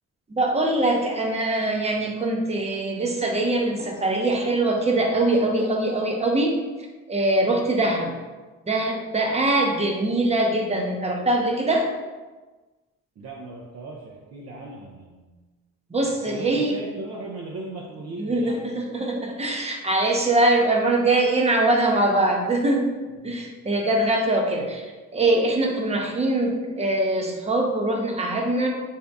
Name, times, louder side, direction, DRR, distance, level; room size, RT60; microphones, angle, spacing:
voice 1, 0.3-6.6 7.1-8.1 8.7-11.9 15.9-16.8 18.2-22.9 23.2-24.9 25.1-28.7, right 2 dB, 20° right, 1 dB, 0.7 m, -22 dB
voice 2, 13.2-15.4 16.2-18.6 23.2-23.4, right 2 dB, 60° right, -2 dB, 0.6 m, -37 dB
3.5 x 2.8 x 3.4 m, 1.3 s
cardioid pair, 90°, 30 cm